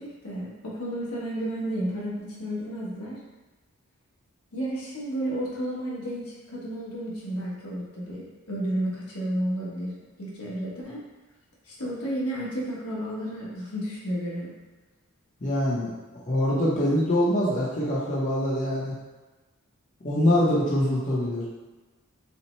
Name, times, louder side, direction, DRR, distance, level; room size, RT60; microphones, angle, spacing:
voice 1, 0.0-3.2 4.5-9.9 10.2-11.0 11.7-14.5, right 1 dB, 85° left, -6 dB, 1.2 m, -32 dB
voice 2, 15.4-15.9 16.3-19.0 20.0-21.5, left 1 dB, 35° left, -6 dB, 0.7 m, -24 dB
5.6 x 2.1 x 3.1 m, 1.2 s
head